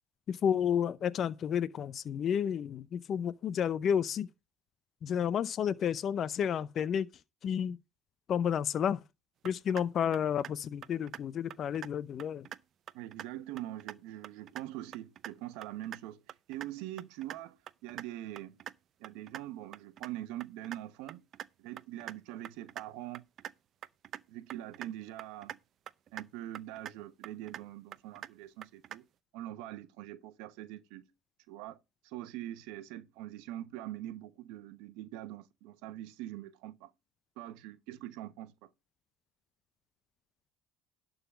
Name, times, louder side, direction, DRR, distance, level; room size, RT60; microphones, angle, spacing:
voice 1, 0.3-4.3 5.0-7.1 7.4-7.8 8.3-9.0 9.4-12.5, left 8 dB, 50° left, 0.6 m, -31 dB
sound 1, 9.5-9.8 10.1-10.5 10.8-11.2 11.5-11.9 12.2-12.6 12.9-13.3 13.6-14.0 14.2-14.6 14.9-15.3 15.6-16.0 16.3-16.7 17.0-17.4 17.7-18.0 18.4-18.7 19.0-19.4 19.7-20.1 20.4-20.8 21.1-21.5 21.8-22.2 22.4-22.8 23.1-23.5 23.8-24.2 24.5-24.9 25.2-25.6 25.9-26.3 26.5-26.9 27.2-27.6 27.9-28.3 28.6-29.0, right 10 dB, 50° right, 0.6 m, -43 dB
voice 2, 12.9-18.6 19.0-21.2 21.6-23.3 24.3-25.5 26.1-29.0 29.3-31.1 31.5-31.8 32.0-36.9 37.4-38.7, right 14 dB, 75° right, 1.0 m, -43 dB
11.5 x 4.0 x 7.2 m
supercardioid pair, 85°, 0 cm